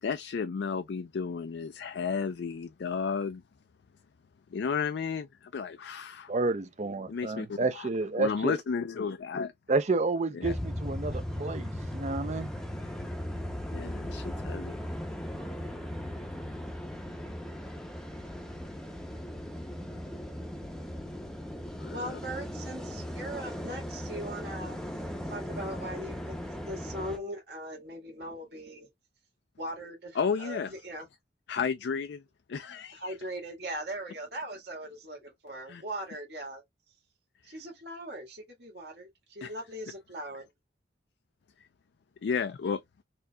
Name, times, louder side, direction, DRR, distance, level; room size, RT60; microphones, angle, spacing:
voice 1, 0.0-3.4 4.5-6.3 7.1-7.9 8.2-9.5 10.3-10.5 13.7-14.8 21.8-22.2 30.2-30.8 31.5-32.2 32.5-33.2 35.7-35.8 37.5-37.6 39.4-39.5 42.2-42.8, left 6 dB, 70° left, 0.4 m, -33 dB
voice 2, 6.3-8.6 9.7-12.5, right 3 dB, 40° right, 0.5 m, -30 dB
sound 1, 10.4-27.2, equal, 5° left, 0.6 m, -38 dB
voice 3, 21.9-24.8 25.3-26.3 26.7-28.9 29.6-31.0 32.9-36.6 37.4-40.4, right 1 dB, 65° right, 1.8 m, -40 dB
4.3 x 2.8 x 2.2 m
head